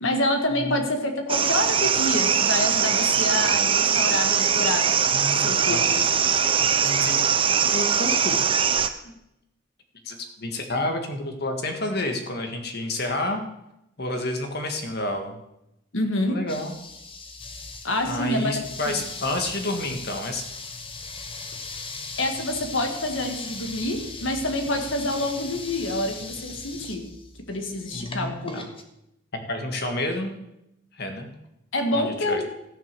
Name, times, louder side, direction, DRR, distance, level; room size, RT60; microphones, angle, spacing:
voice 1, 0.0-4.9 5.3-6.0 15.9-16.4 17.8-18.5 18.9-19.0 22.2-27.1 27.5-28.6 31.7-32.5, left 1 dB, 70° left, 4 dB, 1.8 m, -27 dB
sound 1, 1.3-8.9, right 7 dB, 25° right, 0.6 m, -21 dB
voice 2, 5.1-5.8 6.8-7.3 7.7-8.4 9.0-9.1 10.0-13.4 14.0-15.4 16.3-16.7 18.0-20.5 27.9-28.7 29.3-30.4 30.9-31.3 31.9-32.5, left 1 dB, 55° left, 5 dB, 1.7 m, -29 dB
sound 2, 16.5-28.8, left 3 dB, 25° left, 1.1 m, -39 dB
14.5 x 6.7 x 6.8 m, 0.86 s
head